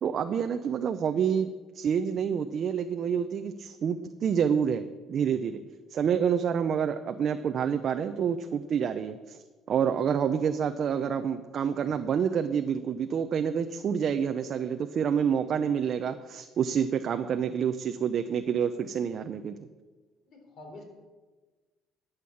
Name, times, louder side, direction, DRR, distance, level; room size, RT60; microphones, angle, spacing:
voice 1, 0.0-5.6 5.9-9.4 9.7-19.6, right 7 dB, 50° right, 7 dB, 0.6 m, -28 dB
voice 2, 20.3-20.8, left 2 dB, 55° left, 2 dB, 4.0 m, -46 dB
12.0 x 8.1 x 7.1 m, 1.3 s
cardioid pair, 110°, 0 cm